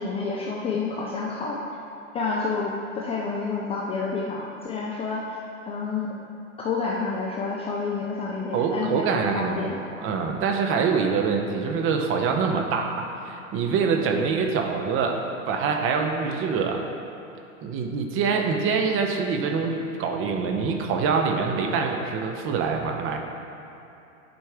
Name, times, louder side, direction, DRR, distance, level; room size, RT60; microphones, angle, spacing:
voice 1, 0.0-1.6 2.1-5.4 5.6-6.2 6.6-9.8, left 4 dB, 15° left, -3 dB, 0.4 m, -29 dB
voice 2, 8.5-9.6 10.0-16.8 17.6-23.2, right 5 dB, 30° right, 3 dB, 0.8 m, -25 dB
11.5 x 4.3 x 3.5 m, 2.9 s
hypercardioid pair, 120°, 40 cm